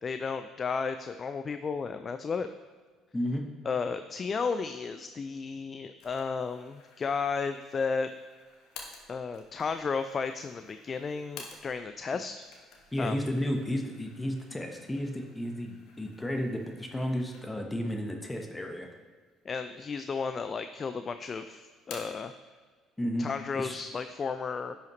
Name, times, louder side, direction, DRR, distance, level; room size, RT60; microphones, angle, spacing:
voice 1, 0.0-2.5 3.6-8.1 9.1-12.4 13.0-13.2 19.5-22.3 23.2-24.8, left 5 dB, 40° left, 10 dB, 0.3 m, -33 dB
voice 2, 3.1-3.5 12.9-18.9 23.0-23.3 23.5-23.8, equal, 15° left, 3 dB, 1.0 m, -32 dB
sound 1, 6.0-12.0 12.3-17.8 18.2-18.3 19.1-19.8 20.1-20.9 21.2-22.3, left 4 dB, 70° left, 1.2 m, -52 dB
10.5 x 5.7 x 3.1 m, 1.5 s
hypercardioid pair, 60°, 0 cm